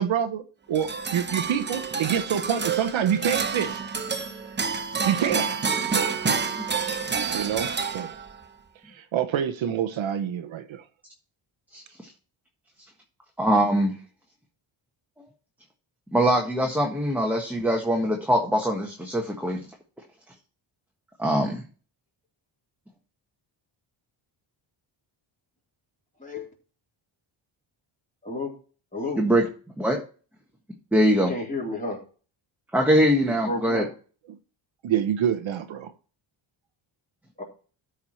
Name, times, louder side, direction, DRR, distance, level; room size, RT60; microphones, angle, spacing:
voice 1, 0.0-3.8 5.0-5.6 7.3-8.1 8.8-10.8 34.3-34.4 34.8-35.9, right 9 dB, 65° right, 1.0 m, -27 dB
sound 1, 0.7-8.4, right 5 dB, 20° right, 0.8 m, -28 dB
voice 2, 13.4-14.0 16.1-19.6 21.2-21.6 29.2-29.4 29.8-30.0 30.9-31.3 32.7-33.8, equal, 5° right, 1.4 m, -22 dB
voice 3, 28.9-29.2 31.1-32.0 33.3-33.9 37.4-37.5, left 2 dB, 15° left, 3.5 m, -31 dB
13.0 x 4.8 x 4.4 m
cardioid pair, 110°, 50 cm